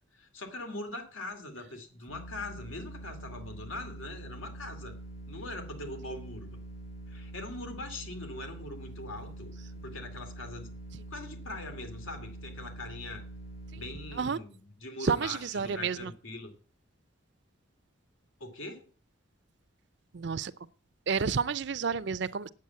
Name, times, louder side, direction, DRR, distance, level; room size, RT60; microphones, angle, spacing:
voice 1, 0.1-4.9 5.3-6.5 7.1-10.7 11.1-13.3 13.8-16.5 18.4-18.8, left 2 dB, 90° left, 2.5 m, -42 dB
sound 1, 2.1-14.2, right 1 dB, 65° left, 6.1 m, -45 dB
voice 2, 15.0-16.0 20.1-20.5 21.1-22.5, right 5 dB, 60° right, 0.5 m, -30 dB
8.8 x 8.5 x 7.5 m
head